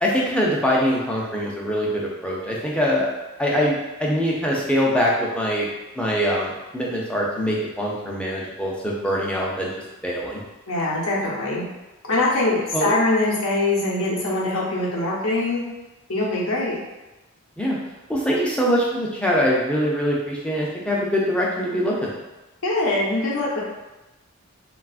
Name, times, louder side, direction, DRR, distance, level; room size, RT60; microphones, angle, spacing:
voice 1, 0.0-3.1 3.4-5.7 6.0-9.7 10.0-10.4 12.7-12.9 17.6-17.8 18.1-22.1, equal, 5° left, -4 dB, 0.4 m, -23 dB
voice 2, 10.7-11.6 12.1-15.6 16.1-16.7 22.6-23.6, left 2 dB, 80° left, -4 dB, 0.7 m, -23 dB
3.2 x 2.3 x 2.4 m, 1.1 s
head